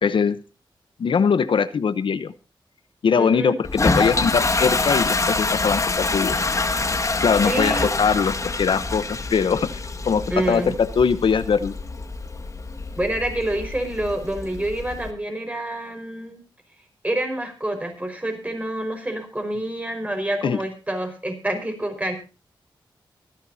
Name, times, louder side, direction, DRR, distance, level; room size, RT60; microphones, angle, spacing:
voice 1, 0.0-0.4 1.0-2.3 3.0-6.4 7.2-9.0 9.3-11.8 20.4-20.6, left 6 dB, 70° left, 13 dB, 0.9 m, -21 dB
voice 2, 3.2-3.6 7.4-7.9 10.3-10.7 13.0-16.4 17.0-22.1, right 1 dB, 15° right, 5 dB, 5.0 m, -27 dB
Toilet flush, 3.6-15.1, left 3 dB, 35° left, 1.9 m, -26 dB
24.5 x 10.5 x 2.7 m, 0.32 s
wide cardioid pair, 85°, 9 cm